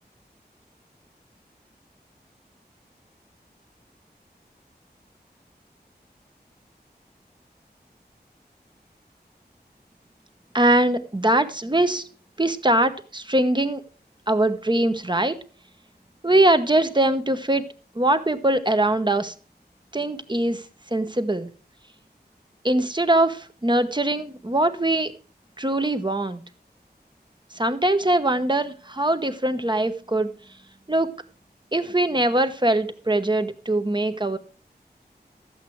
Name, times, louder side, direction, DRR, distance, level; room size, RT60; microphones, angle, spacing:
voice 1, 10.5-12.1 12.4-13.8 14.3-15.4 16.2-17.6 17.9-19.3 19.9-20.6 20.9-21.5 22.6-25.1 25.6-26.4 27.5-30.3 30.9-31.1 31.7-34.4, right 1 dB, 25° right, 9 dB, 1.0 m, -22 dB
12.0 x 8.1 x 4.6 m, 0.38 s
wide cardioid pair, 55°, 17 cm